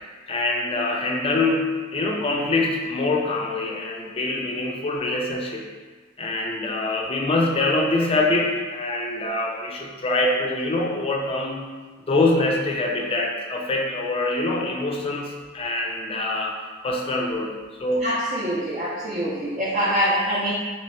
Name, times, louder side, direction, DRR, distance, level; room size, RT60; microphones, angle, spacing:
voice 1, 0.3-5.7 6.2-11.7 12.1-16.5 16.8-17.5 17.8-18.1, left 2 dB, 30° left, 0 dB, 0.4 m, -24 dB
voice 2, 18.0-20.5, equal, 40° right, -8 dB, 0.5 m, -24 dB
3.0 x 2.3 x 4.1 m, 1.4 s
head